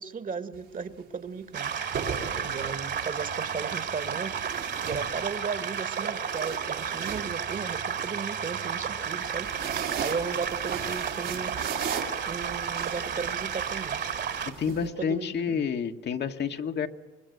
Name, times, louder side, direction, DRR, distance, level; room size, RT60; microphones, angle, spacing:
voice 1, 0.0-1.7 2.4-4.4 4.8-9.5 10.0-11.6 12.3-14.0 14.8-15.6, right 5 dB, 45° right, 1.8 m, -36 dB
sound 1, 0.5-0.8 1.7-2.9 4.3-5.6 6.0-8.1 9.2-14.9, right 7 dB, 85° right, 5.0 m, -37 dB
sound 2, 1.5-14.5, right 7 dB, 60° right, 2.7 m, -32 dB
voice 2, 14.6-16.9, left 7 dB, 60° left, 1.5 m, -29 dB
25.5 x 21.5 x 7.9 m
cardioid pair, 90°, 20 cm